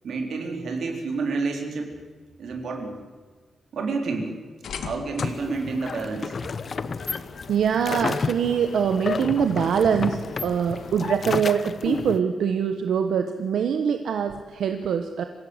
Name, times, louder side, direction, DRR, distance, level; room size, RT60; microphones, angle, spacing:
voice 1, 0.0-1.9 2.4-3.0 3.7-4.4 4.8-6.3, right 4 dB, 65° right, 2 dB, 3.7 m, -29 dB
sound 1, 4.6-11.2, left 6 dB, 85° left, 1.8 m, -41 dB
sound 2, 5.2-12.2, left 5 dB, 35° left, 0.7 m, -31 dB
voice 2, 7.5-15.2, right 7 dB, 85° right, 7 dB, 1.2 m, -24 dB
26.5 x 16.0 x 8.0 m, 1.4 s
wide cardioid pair, 180°, 0 cm